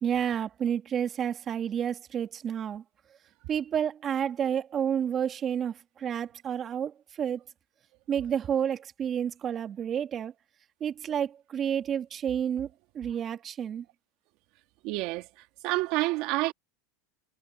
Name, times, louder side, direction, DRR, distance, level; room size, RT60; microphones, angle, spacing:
voice 1, 0.0-2.8 3.5-7.4 8.1-10.3 10.8-12.7 12.9-13.8, right 8 dB, 35° right, 2.3 m, -30 dB
voice 2, 14.8-16.5, right 21 dB, 60° right, 1.8 m, -29 dB
supercardioid pair, 115°, 0 cm